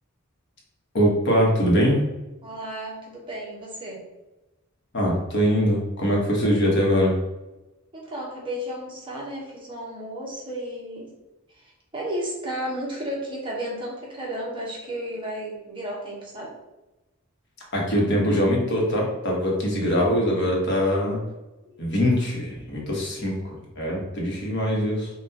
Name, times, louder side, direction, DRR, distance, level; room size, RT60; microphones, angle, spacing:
voice 1, 0.9-2.0 4.9-7.1 17.7-21.2 21.8-25.1, equal, 55° left, -2 dB, 1.2 m, -22 dB
voice 2, 2.4-4.0 7.9-11.1 11.5-16.5 21.6-21.8, right 1 dB, 25° right, -4 dB, 1.0 m, -33 dB
5.6 x 2.4 x 2.8 m, 1.0 s
head